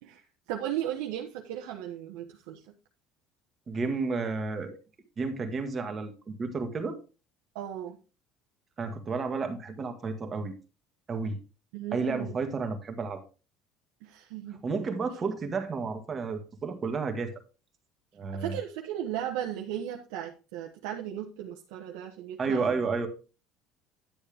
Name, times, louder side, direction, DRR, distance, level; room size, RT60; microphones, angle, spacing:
voice 1, 0.0-2.6 7.5-8.0 11.7-12.4 14.0-14.6 18.3-22.8, right 11 dB, 90° right, 1 dB, 1.2 m, -36 dB
voice 2, 3.7-4.8 5.2-7.0 8.8-10.5 11.1-11.4 11.9-13.2 14.6-17.3 18.1-18.6 22.4-23.1, right 4 dB, 30° right, 5 dB, 1.8 m, -31 dB
10.5 x 7.1 x 3.5 m, 0.33 s
cardioid pair, 125°, 0 cm